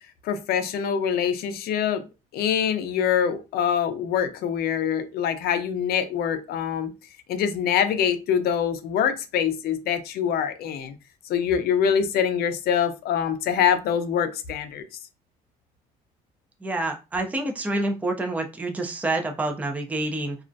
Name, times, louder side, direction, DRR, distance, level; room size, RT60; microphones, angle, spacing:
voice 1, 0.2-2.0 2.3-6.9 7.3-10.9 11.3-14.9, left 8 dB, 65° left, 0.5 m, -24 dB
voice 2, 16.6-20.4, right 2 dB, 10° right, 0.4 m, -27 dB
2.4 x 2.0 x 2.5 m
cardioid pair, 110°, 17 cm